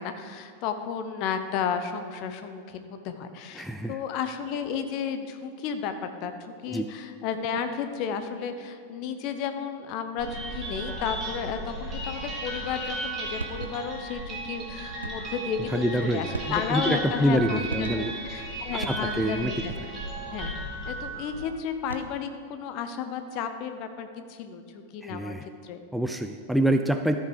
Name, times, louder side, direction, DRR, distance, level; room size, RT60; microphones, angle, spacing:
voice 1, 0.0-19.7 20.3-20.5 20.8-25.8, left 7 dB, 40° left, 8 dB, 0.7 m, -33 dB
voice 2, 3.6-3.9 6.7-6.9 15.7-18.1 18.7-19.5 25.0-25.4 25.9-27.2, right 1 dB, ahead, 6 dB, 0.4 m, -26 dB
sound 1, 10.2-21.5, right 2 dB, 25° right, 2.6 m, -35 dB
sound 2, 13.4-14.0 15.0-15.4 16.3-16.9 17.7-18.3 18.8-19.5 21.7-22.3, right 3 dB, 75° right, 0.6 m, -38 dB
13.5 x 5.5 x 5.0 m, 2.3 s
figure-of-eight pair, 90°, 0 cm